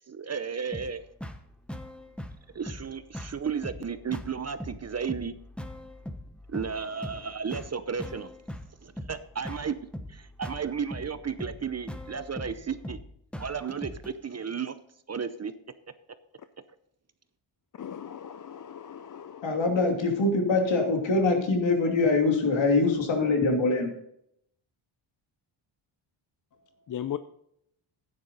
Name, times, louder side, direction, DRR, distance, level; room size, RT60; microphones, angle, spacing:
voice 1, 0.1-1.0 2.5-5.3 6.5-8.3 8.8-9.7 10.1-13.0 13.4-14.8 15.1-15.5, right 6 dB, 30° right, 0.6 m, -33 dB
sound 1, 0.7-14.1, left 1 dB, ahead, 1.0 m, -41 dB
voice 2, 17.7-19.5 26.9-27.2, left 10 dB, 40° left, 0.5 m, -37 dB
voice 3, 19.4-23.9, left 3 dB, 65° left, 2.7 m, -24 dB
11.0 x 9.6 x 4.0 m
cardioid pair, 90°, 49 cm